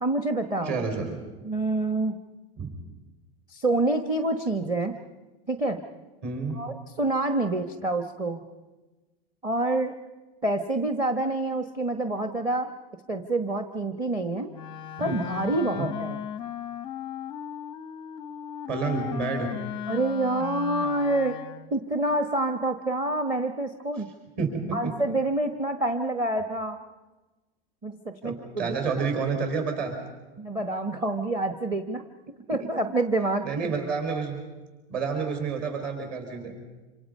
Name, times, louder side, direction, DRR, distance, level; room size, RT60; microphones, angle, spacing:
voice 1, 0.0-0.8 1.4-2.2 3.5-4.9 5.5-5.8 6.5-8.4 9.4-10.0 10.4-12.7 13.1-14.5 15.0-16.2 19.9-21.4 21.7-24.1 24.7-26.8 27.8-29.1 30.4-32.0 32.5-33.7, right 2 dB, 15° right, 7 dB, 1.0 m, -27 dB
voice 2, 0.6-1.2 2.6-2.7 6.2-6.6 15.0-15.2 15.8-15.9 18.7-19.5 24.4-24.9 28.2-30.0 32.6-32.7 33.4-34.4 34.9-36.6, right 5 dB, 35° right, 4 dB, 5.4 m, -29 dB
Wind instrument woodwind instrument, 14.5-21.8, left 10 dB, 15° left, 0.7 m, -36 dB
27.0 x 26.5 x 5.4 m, 1.2 s
supercardioid pair, 155°, 30 cm